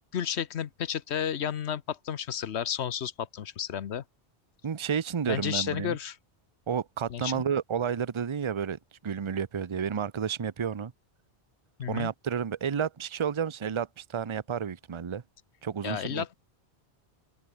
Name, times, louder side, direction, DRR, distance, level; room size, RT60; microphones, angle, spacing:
voice 1, 0.0-4.0 5.3-6.2 7.1-7.4 11.8-12.1 15.8-16.3, left 9 dB, 85° left, 1.1 m, -32 dB
voice 2, 4.6-6.0 6.7-10.9 11.9-15.2 15.6-16.3, right 7 dB, 35° right, 0.6 m, -31 dB
open air
omnidirectional pair, 1.1 m